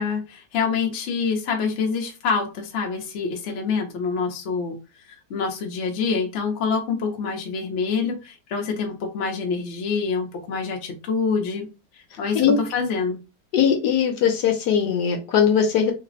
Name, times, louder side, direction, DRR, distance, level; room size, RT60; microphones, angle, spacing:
voice 1, 0.0-4.7 5.3-11.7 12.2-13.2, left 5 dB, 50° left, 2 dB, 1.0 m, -26 dB
voice 2, 13.5-15.9, left 7 dB, 70° left, 3 dB, 1.2 m, -20 dB
3.3 x 2.1 x 3.8 m, 0.29 s
omnidirectional pair, 1.9 m